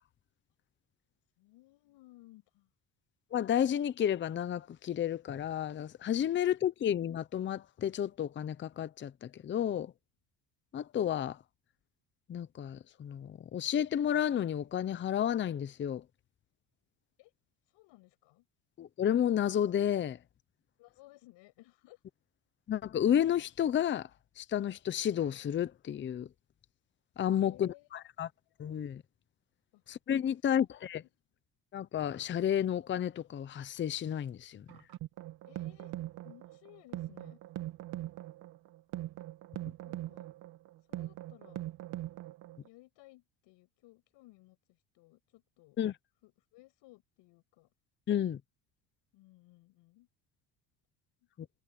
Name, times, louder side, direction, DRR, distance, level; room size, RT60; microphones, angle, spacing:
voice 1, 1.4-2.7 17.2-17.3 17.6-18.5 20.8-22.0 27.4-27.9 29.7-29.8 31.0-31.1 35.5-36.0 36.2-37.4 39.8-40.3 40.9-41.7 42.6-45.8 46.2-47.7 49.1-50.1 51.2-51.3, left 20 dB, 75° left, 7.7 m, -59 dB
voice 2, 3.3-9.9 10.7-11.4 12.3-16.0 18.8-20.2 22.7-24.1 24.4-26.3 27.2-28.3 28.6-29.0 29.9-31.0 31.7-34.6 45.8-45.9 48.1-48.4, left 10 dB, 25° left, 0.7 m, -31 dB
sound 1, 34.7-42.7, right 15 dB, 65° right, 2.1 m, -42 dB
cardioid pair, 135°, 43 cm